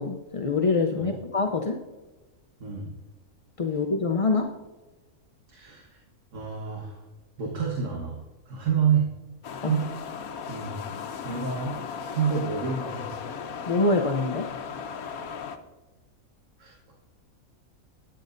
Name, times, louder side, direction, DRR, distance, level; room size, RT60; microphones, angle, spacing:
voice 1, 0.0-1.8 3.6-4.5 9.6-9.7 13.7-14.5, left 3 dB, 45° left, 3 dB, 0.4 m, -25 dB
voice 2, 2.6-2.9 5.5-6.0 6.3-7.0 7.4-9.1 9.7-9.9 10.5-11.8 12.1-13.1 16.6-16.8, right 6 dB, 60° right, -1 dB, 1.7 m, -28 dB
sound 1, 9.4-15.6, left 6 dB, 80° left, 1.2 m, -36 dB
13.0 x 10.0 x 2.6 m, 1.2 s
omnidirectional pair, 1.5 m